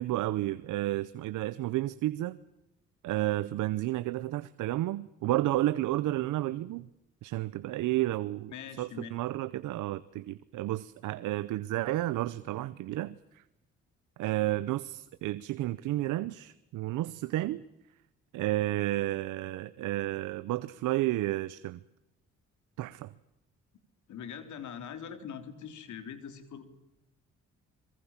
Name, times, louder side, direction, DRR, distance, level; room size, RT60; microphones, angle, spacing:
voice 1, 0.0-2.4 3.0-6.9 7.2-13.4 14.2-17.6 18.3-21.8 22.8-23.1, right 16 dB, 85° right, 0.8 m, -31 dB
voice 2, 8.5-9.1 24.1-26.6, left 7 dB, 75° left, 3.4 m, -42 dB
25.5 x 23.0 x 7.3 m
cardioid pair, 90°, 30 cm